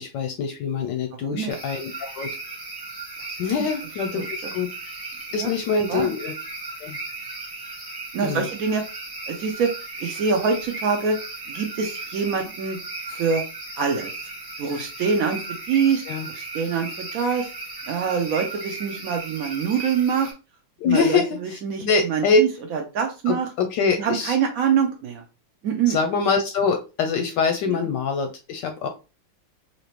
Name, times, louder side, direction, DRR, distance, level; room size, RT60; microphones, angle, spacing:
voice 1, 0.0-2.3 3.4-4.2 4.5-4.7 5.3-6.3 6.8-7.0 8.2-8.5 16.1-16.3 20.8-22.4 23.3-24.4 25.9-28.9, left 5 dB, 75° left, 6 dB, 1.1 m, -24 dB
voice 2, 1.2-1.5 3.6-3.7 4.1-4.5 5.4-5.5 5.9-6.1 8.1-8.8 9.3-9.7 10.0-11.2 11.5-12.8 13.1-13.4 13.8-14.1 14.6-15.4 15.7-16.0 16.3-17.5 17.9-20.3 20.8-23.5 24.0-25.2 25.6-26.0 27.7-27.9, right 6 dB, 80° right, 3 dB, 0.7 m, -25 dB
sound 1, 1.5-20.3, right 3 dB, 15° right, 1.0 m, -36 dB
4.0 x 2.9 x 3.0 m, 0.31 s
omnidirectional pair, 2.2 m